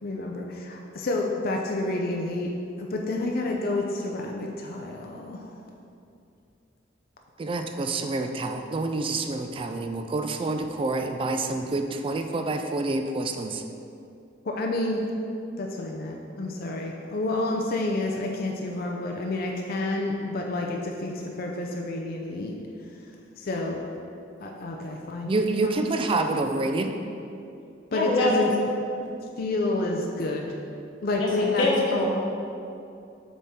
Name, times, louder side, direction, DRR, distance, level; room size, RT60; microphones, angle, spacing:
voice 1, 0.0-5.5 14.4-15.0 15.6-22.6 23.4-23.8 24.4-25.3 25.6-25.9 27.9-28.5 29.4-30.6 31.0-31.7, left 2 dB, 50° left, 0 dB, 0.5 m, -29 dB
voice 2, 7.4-13.6 25.2-26.9, right 2 dB, 30° right, 6 dB, 0.3 m, -27 dB
voice 3, 27.9-28.3 29.0-29.1 31.2-31.3 31.6-32.1, left 2 dB, 90° left, -3 dB, 1.2 m, -24 dB
7.2 x 3.6 x 4.2 m, 2.6 s
head